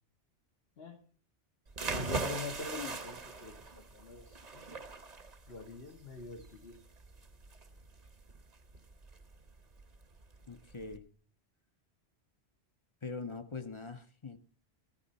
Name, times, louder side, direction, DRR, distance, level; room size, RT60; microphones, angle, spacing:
sound 1, 1.7-11.0, right 3 dB, 40° right, 1.1 m, -41 dB
voice 1, 1.9-4.8 5.5-6.8, left 4 dB, 65° left, 5 dB, 1.5 m, -44 dB
voice 2, 10.5-11.0 13.0-14.4, left 4 dB, 30° left, 9 dB, 0.7 m, -42 dB
14.0 x 12.0 x 4.1 m, 0.41 s
omnidirectional pair, 1.1 m